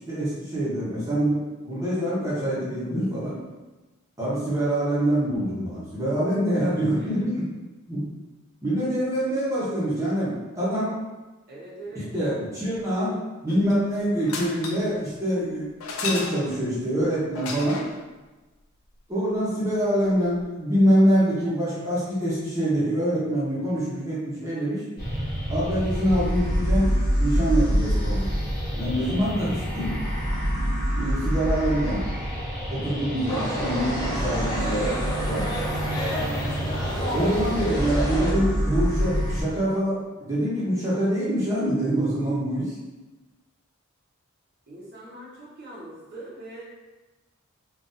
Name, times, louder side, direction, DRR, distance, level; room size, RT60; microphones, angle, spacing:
voice 1, 0.1-3.4 4.2-7.4 7.9-8.1 8.6-11.0 12.1-15.7 16.0-17.9 19.1-24.8 25.5-26.9 27.2-28.3 28.7-30.0 30.9-32.0 32.7-35.4 37.1-40.0 40.3-42.7, equal, 15° right, -9 dB, 1.0 m, -25 dB
voice 2, 11.5-12.1 36.9-37.3 37.6-39.1 44.7-46.6, right 2 dB, 50° right, -7 dB, 0.9 m, -43 dB
sound 1, 13.5-13.9 14.2-15.0 15.8-16.7 17.3-18.0 20.1-20.2 20.4-20.5, left 4 dB, 75° left, 0.5 m, -33 dB
sound 2, 25.0-39.4, equal, 50° left, 1.3 m, -27 dB
sound 3, 33.3-38.3, equal, 20° left, 0.6 m, -30 dB
4.0 x 2.5 x 2.6 m, 1.2 s
head